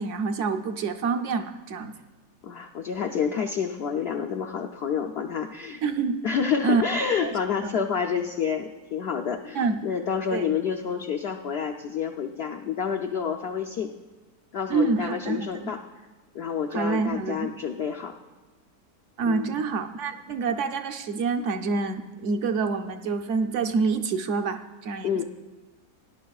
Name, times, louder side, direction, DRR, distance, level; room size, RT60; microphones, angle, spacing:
voice 1, 0.0-1.9 5.8-6.2 6.6-6.8 7.2-7.3 7.6-7.7 9.5-9.8 10.3-10.4 14.7-15.7 16.7-17.5 19.2-25.2, right 4 dB, 60° right, 6 dB, 0.8 m, -27 dB
voice 2, 2.4-5.8 6.2-13.9 14.5-15.8 16.3-18.2 19.2-19.6 25.0-25.2, left 7 dB, 75° left, 4 dB, 0.5 m, -28 dB
18.5 x 11.0 x 2.3 m, 1.3 s
omnidirectional pair, 1.7 m